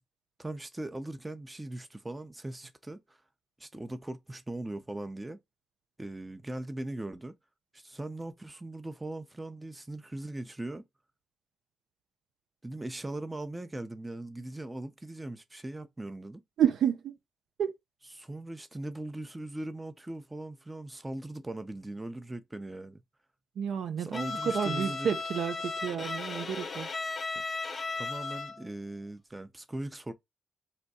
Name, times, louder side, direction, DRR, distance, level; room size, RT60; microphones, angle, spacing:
voice 1, 0.4-3.2 3.6-5.4 6.0-7.3 7.7-10.8 12.6-16.4 18.2-23.0 24.0-25.1 28.0-30.1, right 1 dB, 20° right, 0.6 m, -40 dB
voice 2, 16.6-17.2 17.6-17.7 23.6-26.9, right 8 dB, 70° right, 0.4 m, -30 dB
Bowed string instrument, 24.1-28.7, left 4 dB, 45° left, 0.5 m, -36 dB
2.6 x 2.1 x 4.0 m
hypercardioid pair, 45°, 0 cm